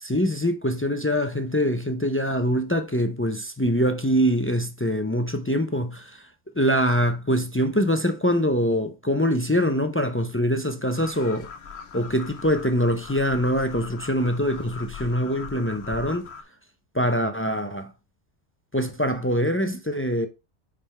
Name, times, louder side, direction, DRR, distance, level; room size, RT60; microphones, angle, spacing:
voice 1, 0.0-6.2 6.6-11.5 11.9-16.3 16.9-17.9 18.7-20.3, equal, 20° left, 0.3 m, -24 dB
sound 1, 10.9-16.4, left 6 dB, 65° left, 1.0 m, -40 dB
5.7 x 5.0 x 4.3 m
omnidirectional pair, 1.2 m